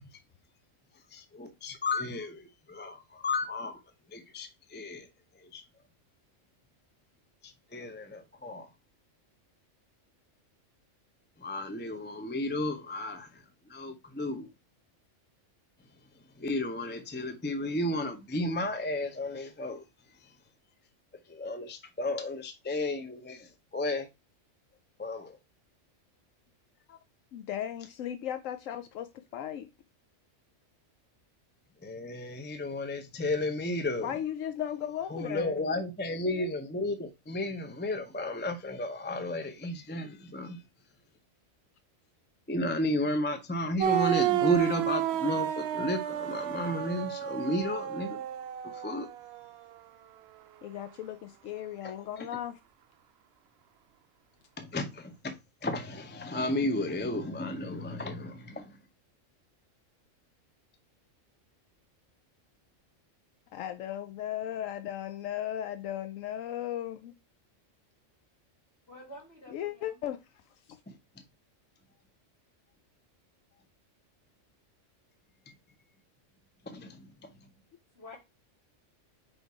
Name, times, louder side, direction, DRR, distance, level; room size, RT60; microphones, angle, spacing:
voice 1, 1.1-3.8 4.1-5.1 5.5-5.6 7.7-8.7 11.4-13.3 13.7-14.5 16.4-19.8 21.3-24.1 25.0-25.4 31.8-34.1 35.1-40.6 42.5-48.2 48.7-49.1 51.8-51.9 54.6-55.3 55.6-58.8 70.9-71.0 76.7-77.3, left 1 dB, 10° left, 0.5 m, -33 dB
voice 2, 27.3-29.7 34.0-35.6 50.6-52.6 63.5-67.1 69.5-70.2, left 11 dB, 85° left, 1.0 m, -36 dB
sound 1, 43.8-49.5, right 12 dB, 65° right, 0.7 m, -31 dB
voice 3, 68.9-70.0 77.9-78.2, left 1 dB, 50° left, 3.2 m, -49 dB
5.0 x 4.2 x 4.7 m
omnidirectional pair, 1.3 m